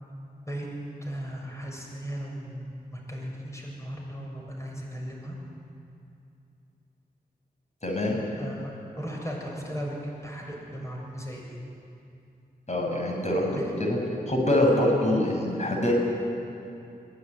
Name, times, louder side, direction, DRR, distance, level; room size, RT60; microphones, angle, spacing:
voice 1, 1.0-5.4 8.4-11.6 13.3-13.7, equal, 20° left, -2 dB, 7.2 m, -37 dB
voice 2, 7.8-8.2 12.7-14.0 14.3-15.9, left 1 dB, 45° left, 0 dB, 6.2 m, -24 dB
22.5 x 17.0 x 9.4 m, 2.6 s
cardioid pair, 60°, 17 cm